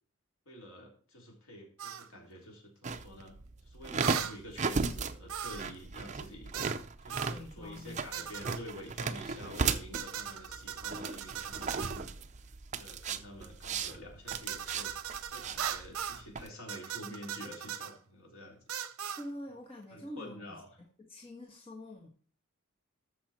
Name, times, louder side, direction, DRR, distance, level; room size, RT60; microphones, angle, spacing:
voice 1, 0.5-3.4 3.6-6.5 7.0-12.2 12.7-14.9 15.3-18.6 19.9-20.7, equal, 65° left, 0 dB, 3.8 m, -48 dB
sound 1, 1.8-2.1 4.0-4.4 5.3-5.8 6.5-6.8 7.1-7.4 8.1-8.6 9.9-12.1 14.3-16.2 16.7-17.9 18.7-19.3, right 9 dB, 75° right, 0.7 m, -39 dB
sound 2, 2.8-16.5, right 4 dB, 35° right, 0.6 m, -36 dB
voice 2, 7.2-8.3 19.2-22.1, left 1 dB, 25° left, 0 dB, 1.5 m, -46 dB
13.5 x 6.0 x 4.4 m, 0.43 s
head